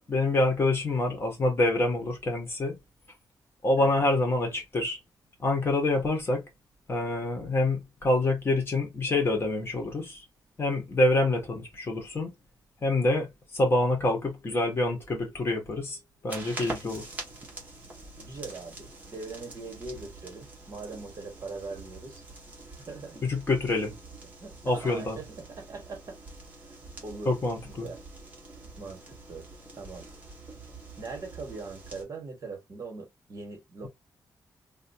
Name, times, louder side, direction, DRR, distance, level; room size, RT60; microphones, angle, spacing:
voice 1, 0.0-2.7 3.6-5.0 5.4-6.4 6.9-10.2 10.6-12.3 12.8-13.3 13.5-16.0 16.2-17.0 23.2-23.9 24.6-25.2 27.2-27.9, left 2 dB, 35° left, 1.5 m, -26 dB
voice 2, 3.8-4.1 16.7-16.9 18.2-22.2 22.9-23.3 24.4-26.2 27.0-27.4 27.6-28.0 28.8-29.5 29.8-30.1 31.0-33.9, right 3 dB, 45° right, 1.7 m, -41 dB
sound 1, 16.3-32.0, right 2 dB, 20° right, 1.4 m, -45 dB
3.2 x 2.9 x 2.7 m
wide cardioid pair, 150°, 7 cm